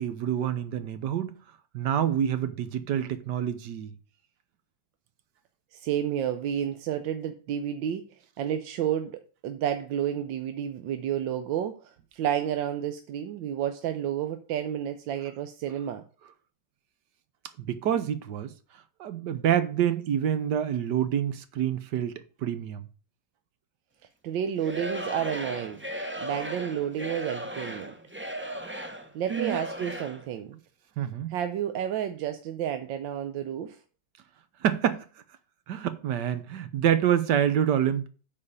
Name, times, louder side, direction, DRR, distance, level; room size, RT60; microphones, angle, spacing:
voice 1, 0.0-1.4 1.7-3.9 17.6-18.5 19.0-22.8 29.3-29.6 31.0-31.3 34.6-35.0 35.7-38.1, right 9 dB, 70° right, 1.4 m, -27 dB
voice 2, 5.7-8.1 8.4-16.0 24.2-25.8 26.2-27.9 29.1-30.6 31.3-33.8, right 10 dB, 90° right, 1.4 m, -31 dB
Singing / Crowd, 24.6-30.3, equal, 15° right, 0.4 m, -36 dB
8.7 x 4.6 x 6.6 m
omnidirectional pair, 2.0 m